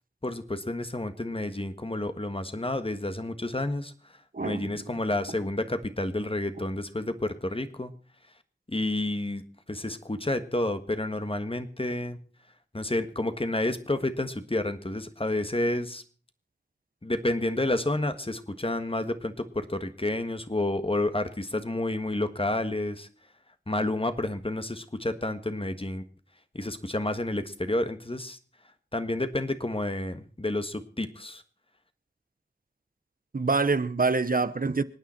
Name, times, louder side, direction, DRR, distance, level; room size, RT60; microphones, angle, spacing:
voice 1, 0.2-3.9 4.4-7.9 8.7-9.4 9.7-12.2 12.7-16.0 17.0-23.1 23.7-26.0 26.5-28.4 28.9-31.4, left 1 dB, 30° left, 1.5 m, -30 dB
voice 2, 4.3-4.8 33.3-34.8, right 4 dB, 50° right, 0.9 m, -26 dB
26.5 x 9.3 x 4.4 m
wide cardioid pair, 40°, 18 cm